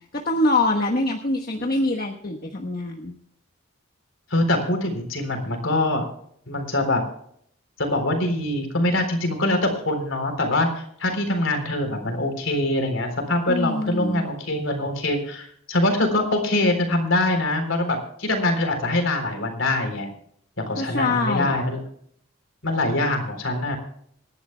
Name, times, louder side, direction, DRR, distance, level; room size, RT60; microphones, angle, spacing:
voice 1, 0.1-3.1 13.5-14.3 20.8-21.6, left 2 dB, 45° left, 1 dB, 1.3 m, -24 dB
voice 2, 4.3-6.1 6.5-7.0 7.8-20.1 20.6-21.8 22.6-23.8, left 1 dB, 70° left, 5 dB, 3.8 m, -24 dB
26.5 x 11.5 x 2.3 m, 0.66 s
head